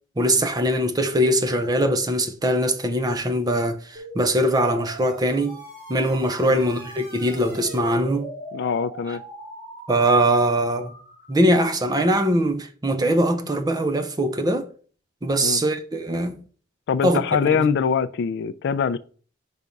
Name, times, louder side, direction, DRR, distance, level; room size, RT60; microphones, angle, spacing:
voice 1, 0.2-5.6 5.9-8.3 9.9-11.0 11.3-14.7 15.2-16.4 17.0-17.7, right 1 dB, 20° right, 0.6 m, -22 dB
sound 1, 3.9-11.4, right 2 dB, 45° right, 3.0 m, -40 dB
voice 2, 8.5-9.2 15.4-15.6 16.9-19.0, left 6 dB, 55° left, 0.3 m, -23 dB
5.7 x 3.5 x 5.2 m
head